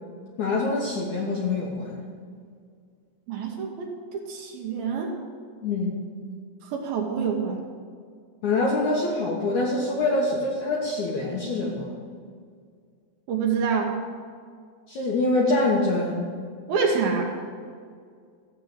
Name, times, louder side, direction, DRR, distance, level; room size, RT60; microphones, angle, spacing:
voice 1, 0.4-2.0 5.6-6.0 8.4-11.9 14.9-16.3, left 2 dB, 65° left, -3 dB, 2.0 m, -25 dB
voice 2, 3.3-5.2 6.7-7.6 13.3-14.0 16.7-17.3, right 5 dB, 70° right, 1 dB, 2.7 m, -26 dB
14.0 x 7.6 x 8.1 m, 2.1 s
omnidirectional pair, 5.2 m